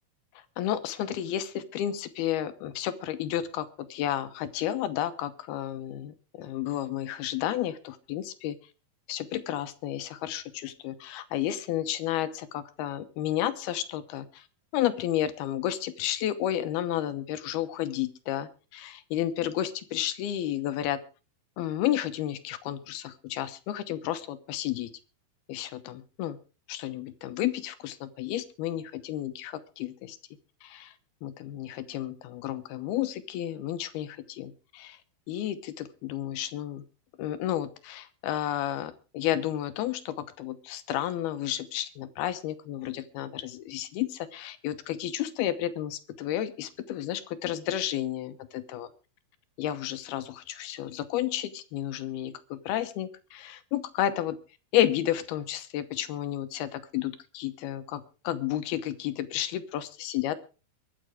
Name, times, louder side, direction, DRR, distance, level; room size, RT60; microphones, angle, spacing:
voice 1, 0.6-8.6 9.1-14.5 14.7-21.0 21.6-24.9 25.5-26.4 26.7-30.2 30.6-30.9 31.2-35.0 35.3-36.8 37.2-48.9 49.6-54.4 54.7-60.5, left 12 dB, 75° left, 11 dB, 2.8 m, -31 dB
23.0 x 7.7 x 4.9 m, 0.34 s
omnidirectional pair, 4.7 m